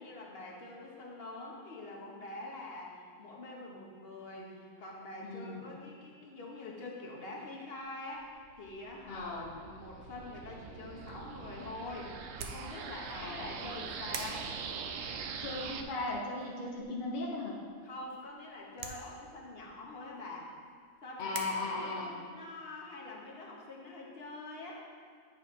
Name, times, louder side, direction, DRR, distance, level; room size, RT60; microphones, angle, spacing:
voice 1, 0.0-14.5 17.8-20.5 21.0-21.3 21.7-24.8, left 2 dB, 40° left, -3 dB, 1.0 m, -45 dB
voice 2, 5.2-5.6 9.1-9.5 13.1-13.5 15.4-17.5 21.2-22.1, left 2 dB, 60° left, -2 dB, 0.5 m, -37 dB
sound 1, 8.5-15.8, right 6 dB, 85° right, 1.3 m, -43 dB
sound 2, 10.9-21.4, right 5 dB, 65° right, 1.1 m, -49 dB
8.7 x 3.2 x 5.7 m, 2.1 s
omnidirectional pair, 2.0 m